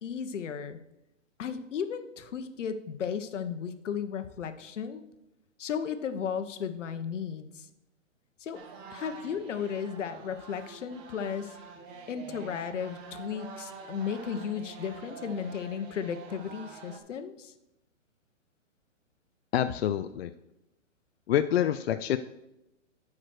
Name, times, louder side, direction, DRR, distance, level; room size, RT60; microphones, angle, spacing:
voice 1, 0.0-0.8 1.4-5.0 5.6-7.7 8.4-8.6 8.9-11.6 12.1-17.5, left 7 dB, 75° left, 10 dB, 1.0 m, -35 dB
sound 1, 8.5-17.0, right 5 dB, 25° right, 1.0 m, -47 dB
voice 2, 19.5-20.3 21.3-22.2, left 11 dB, 55° left, 10 dB, 0.5 m, -27 dB
8.5 x 5.0 x 6.4 m, 0.88 s
hypercardioid pair, 145°, 37 cm